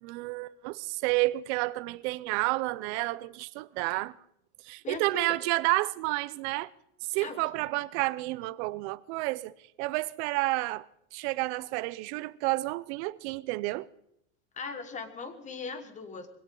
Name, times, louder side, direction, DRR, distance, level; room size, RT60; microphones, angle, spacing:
voice 1, 0.0-4.1 4.6-6.7 7.1-9.5 9.8-10.9 11.1-13.9, right 20 dB, 60° right, 0.7 m, -30 dB
voice 2, 4.8-5.4 7.1-7.7 14.5-16.3, left 5 dB, 20° left, 1.4 m, -39 dB
21.5 x 17.0 x 3.9 m
cardioid pair, 170°, 37 cm